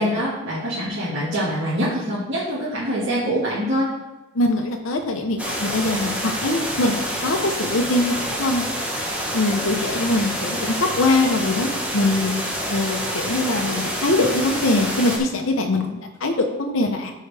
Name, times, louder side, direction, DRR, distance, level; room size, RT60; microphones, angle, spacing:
voice 1, 0.0-3.9, equal, 65° right, -9 dB, 1.9 m, -24 dB
voice 2, 4.3-8.6 9.3-12.3 12.7-17.1, left 2 dB, 85° left, 3 dB, 0.8 m, -22 dB
sound 1, 5.4-15.2, equal, 5° right, 1.2 m, -27 dB
12.5 x 4.7 x 3.4 m, 1.1 s
head